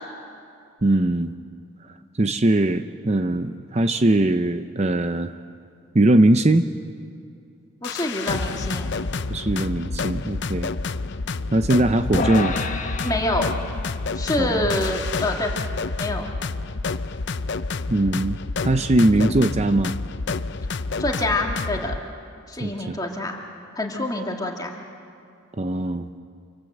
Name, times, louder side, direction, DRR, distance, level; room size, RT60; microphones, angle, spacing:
voice 1, 0.8-1.3 2.2-5.3 5.9-6.7 9.3-10.7 11.5-12.6 14.4-14.7 17.9-18.4 18.6-19.9 22.6-23.0 25.6-26.1, right 1 dB, 30° right, 9 dB, 0.6 m, -20 dB
sound 1, 7.8-22.0, left 3 dB, 55° left, 0.6 m, -29 dB
voice 2, 7.8-8.9 13.0-13.5 14.1-15.6 16.0-16.3 21.0-21.9 22.5-23.4 23.8-24.7, left 1 dB, 15° left, 0 dB, 2.1 m, -26 dB
sound 2, 12.1-18.5, left 3 dB, 35° left, 1.4 m, -33 dB
27.5 x 25.0 x 8.0 m, 2.4 s
head